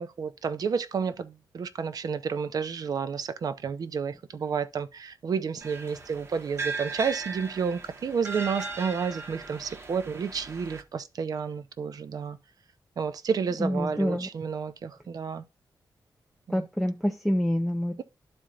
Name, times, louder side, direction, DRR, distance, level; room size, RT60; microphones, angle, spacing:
voice 1, 0.0-12.4 13.0-15.4 16.5-16.7, right 6 dB, 55° right, 0.7 m, -31 dB
sound 1, 5.6-10.8, right 3 dB, 35° right, 1.0 m, -38 dB
voice 2, 13.6-14.3 16.5-18.0, equal, ahead, 0.4 m, -27 dB
13.0 x 4.4 x 2.4 m
wide cardioid pair, 175°, 8 cm